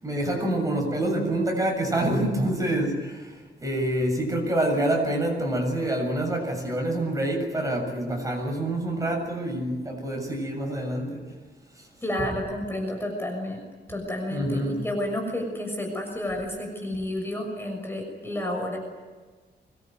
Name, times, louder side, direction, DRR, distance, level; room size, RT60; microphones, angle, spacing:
voice 1, 0.0-11.2 11.8-11.9 14.3-14.8, right 1 dB, 20° right, 1 dB, 7.4 m, -27 dB
voice 2, 12.0-13.6 13.9-18.8, left 1 dB, 15° left, 2 dB, 6.4 m, -30 dB
25.0 x 22.0 x 9.6 m, 1.4 s
wide cardioid pair, 150°, 18 cm